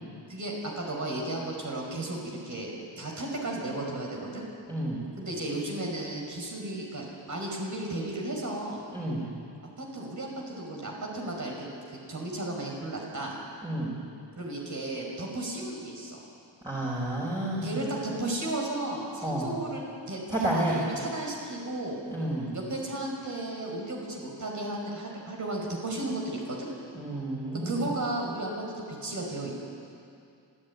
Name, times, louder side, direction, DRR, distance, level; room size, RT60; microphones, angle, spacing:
voice 1, 0.3-4.4 5.2-8.8 9.8-13.4 14.3-16.2 17.6-20.2 20.6-22.0 22.5-26.7 27.7-28.5 28.8-29.6, right 1 dB, 40° right, -1 dB, 5.3 m, -34 dB
voice 2, 4.7-5.0 8.9-9.2 13.6-13.9 16.6-17.8 19.2-19.5 20.3-20.8 22.1-22.5 26.9-27.8, right 1 dB, 10° right, -6 dB, 5.4 m, -30 dB
26.0 x 15.0 x 9.7 m, 2.5 s
cardioid pair, 115°, 44 cm